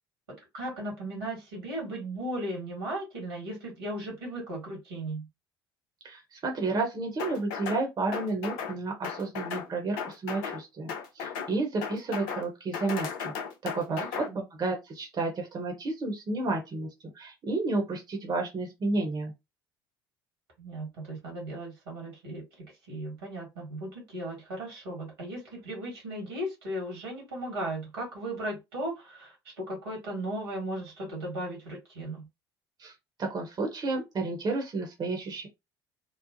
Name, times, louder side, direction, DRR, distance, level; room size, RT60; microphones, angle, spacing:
voice 1, 0.3-5.3 13.9-14.4 20.6-32.3, right 1 dB, 75° right, 1.5 m, -36 dB
voice 2, 6.0-13.3 13.6-14.3 14.6-16.9 17.1-19.3 32.8-32.9 33.2-35.5, right 3 dB, 35° right, 0.9 m, -31 dB
sound 1, 7.2-7.8 8.1-8.8 9.0-9.7 10.0-10.6 10.9-11.5 11.8-12.5 12.7-14.3, left 6 dB, 65° left, 0.5 m, -35 dB
3.1 x 2.0 x 2.6 m
figure-of-eight pair, 55°, 12 cm